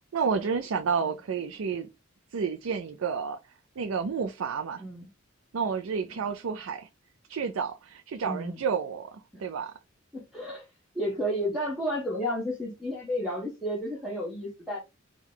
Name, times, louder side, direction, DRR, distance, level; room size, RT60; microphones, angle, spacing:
voice 1, 0.1-1.9 2.3-3.4 3.8-4.8 5.5-6.9 7.3-9.7, right 6 dB, 85° right, 0.4 m, -30 dB
voice 2, 8.2-8.6 9.3-9.4 10.1-10.7 10.9-14.8, equal, ahead, 1.2 m, -32 dB
4.5 x 2.2 x 3.8 m
head